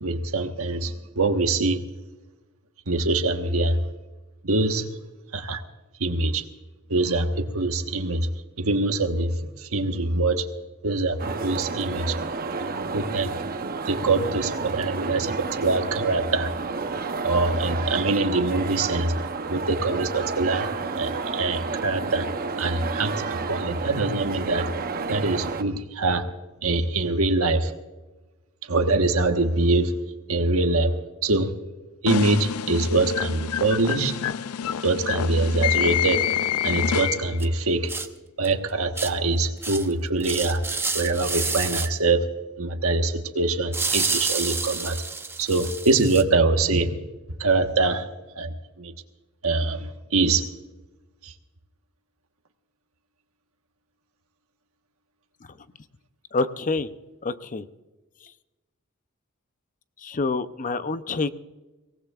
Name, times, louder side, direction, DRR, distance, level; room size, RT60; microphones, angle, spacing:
voice 1, 0.0-1.8 2.9-3.8 4.4-4.9 5.3-5.6 6.0-6.4 6.9-8.3 8.6-9.3 9.6-10.5 10.8-12.2 12.6-13.3 13.9-16.5 17.2-19.1 19.5-20.7 21.0-22.3 22.6-24.7 25.1-26.3 26.6-27.7 28.7-29.9 30.3-30.9 31.2-31.5 32.0-34.2 34.8-36.2 36.6-37.9 38.4-40.6 40.9-42.3 42.6-45.0 45.4-47.0 47.4-48.0 48.4-48.5 48.8-48.9 49.4-50.4, right 3 dB, 75° right, 6 dB, 1.3 m, -24 dB
sound 1, 11.2-25.6, right 4 dB, 45° right, 0.8 m, -31 dB
sound 2, 32.1-37.5, left 9 dB, 85° left, 0.4 m, -27 dB
sound 3, 37.4-37.5 37.9-38.1 38.4-38.5 39.0-39.1 39.6-39.9 40.2-41.9 43.7-46.2, right 4 dB, 10° right, 0.8 m, -29 dB
voice 2, 56.3-56.9 57.2-57.7 60.0-61.3, left 3 dB, 35° left, 12 dB, 0.6 m, -27 dB
23.5 x 18.5 x 2.4 m, 1.1 s
head